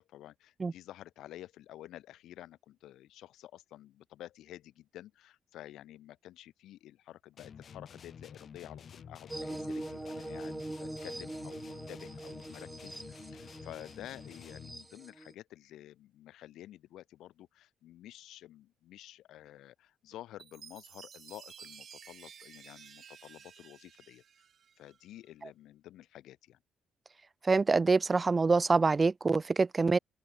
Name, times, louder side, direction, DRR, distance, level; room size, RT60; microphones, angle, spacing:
voice 1, 0.0-24.2 24.8-26.6, left 13 dB, 85° left, 5.7 m, -51 dB
sound 1, 7.4-14.9, left 7 dB, 50° left, 5.8 m, -50 dB
sound 2, 9.3-15.3, right 2 dB, 10° right, 1.5 m, -42 dB
Chime, 20.4-25.0, right 7 dB, 55° right, 4.5 m, -53 dB
voice 2, 27.5-30.0, right 4 dB, 30° right, 0.4 m, -25 dB
open air
cardioid pair, 90°, 0 cm